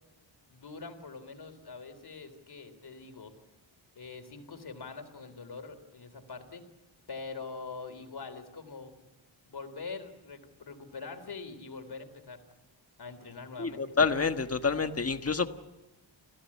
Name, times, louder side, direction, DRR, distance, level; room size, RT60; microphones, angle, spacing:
voice 1, 0.5-3.3 4.0-6.7 7.1-8.9 9.5-12.4 13.0-13.9, left 4 dB, 55° left, 8 dB, 3.7 m, -44 dB
voice 2, 13.6-15.5, left 5 dB, 30° left, 8 dB, 1.5 m, -28 dB
30.0 x 16.5 x 8.7 m, 1.1 s
wide cardioid pair, 115°, 46 cm